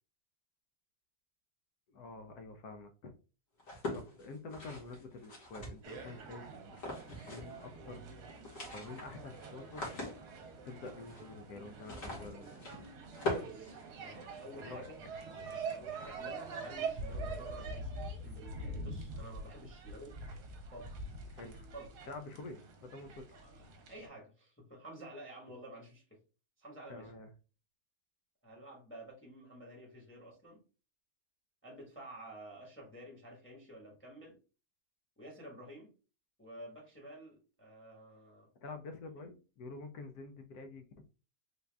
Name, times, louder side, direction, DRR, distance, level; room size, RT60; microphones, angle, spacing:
voice 1, 1.9-3.1 3.7-6.5 7.3-8.1 8.7-9.9 10.6-12.9 14.6-14.9 21.3-21.7 22.1-23.3 26.9-27.3 38.6-40.9, left 3 dB, 70° left, 1.0 m, -48 dB
sound 1, 3.6-6.1 6.7-7.6 7.9-8.0 8.3-14.4, left 2 dB, 50° left, 1.7 m, -42 dB
sound 2, 5.8-24.1, right 3 dB, 70° right, 1.3 m, -45 dB
voice 2, 13.4-15.0 15.6-20.2 20.7-21.1 21.7-21.9 23.4-26.0 26.6-27.1 28.4-30.6 31.6-34.4 35.2-35.9 36.4-38.5, right 1 dB, 10° left, 1.0 m, -51 dB
4.0 x 2.3 x 3.3 m
omnidirectional pair, 1.9 m